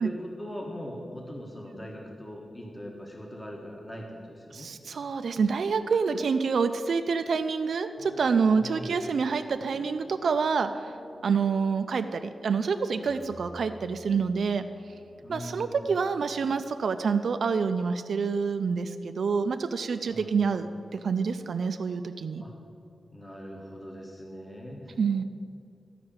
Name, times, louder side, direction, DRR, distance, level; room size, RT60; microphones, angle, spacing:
voice 1, 0.0-4.7 8.5-9.0 15.2-15.8 20.1-20.4 22.4-22.5 23.1-25.0, equal, 15° left, 0 dB, 1.4 m, -41 dB
voice 2, 4.5-10.9 11.2-14.7 15.3-22.4 25.0-25.2, right 5 dB, 70° right, 8 dB, 0.5 m, -27 dB
sound 1, 8.0-16.1 16.7-16.8 17.0-17.3, equal, 80° left, 2.5 m, -47 dB
12.5 x 5.9 x 8.8 m, 2.4 s
wide cardioid pair, 160°, 0 cm